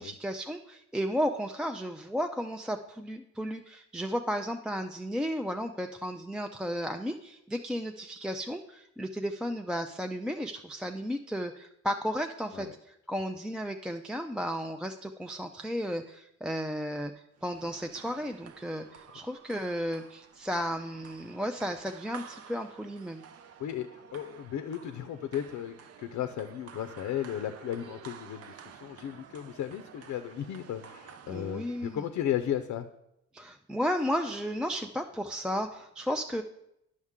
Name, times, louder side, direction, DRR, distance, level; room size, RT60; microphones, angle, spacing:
voice 1, 0.0-17.1 17.4-23.2 31.3-32.0 33.3-36.4, equal, 5° right, 4 dB, 0.3 m, -34 dB
sound 1, 17.4-32.2, right 7 dB, 55° right, 0.6 m, -51 dB
voice 2, 23.6-32.9, left 10 dB, 70° left, 9 dB, 0.6 m, -35 dB
9.6 x 6.4 x 3.6 m, 0.81 s
cardioid pair, 90°, 30 cm